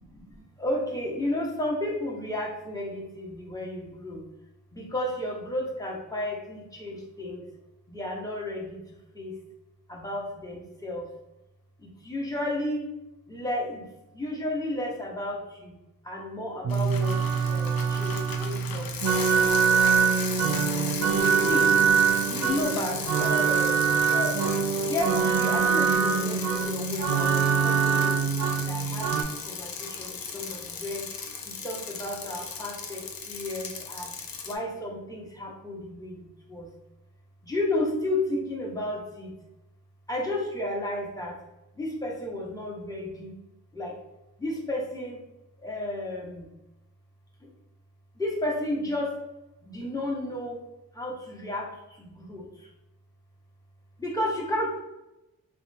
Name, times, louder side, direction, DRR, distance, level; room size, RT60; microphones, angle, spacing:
voice 1, 0.1-4.2 4.7-7.4 7.9-8.8 9.1-9.3 9.9-11.1 11.8-12.9 13.3-13.8 14.1-15.8 16.0-17.2 17.4-19.6 21.4-21.8 22.3-27.4 27.6-28.2 28.7-31.0 31.4-34.1 34.4-36.7 37.4-39.3 40.1-41.4 41.8-43.3 43.7-44.0 44.4-45.2 45.6-46.5 48.2-49.1 49.6-50.6 50.9-51.7 52.0-52.7 54.0-54.8, left 1 dB, 10° left, -3 dB, 0.9 m, -32 dB
sound 1, 16.6-29.2, right 6 dB, 50° right, 0.4 m, -24 dB
Bicycle, 16.7-34.5, left 5 dB, 70° left, 0.5 m, -36 dB
2.8 x 2.2 x 2.6 m, 0.93 s
cardioid pair, 45°, 36 cm